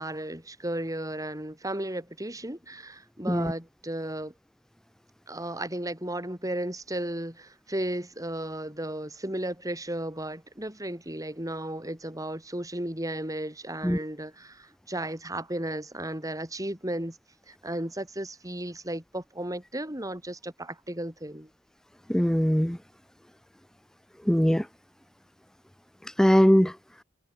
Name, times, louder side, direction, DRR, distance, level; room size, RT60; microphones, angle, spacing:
voice 1, 0.0-4.3 5.3-17.2 17.5-21.5, right 1 dB, 20° right, 5.5 m, -34 dB
voice 2, 22.1-22.8 24.3-24.7 26.2-26.7, equal, 5° left, 0.4 m, -21 dB
head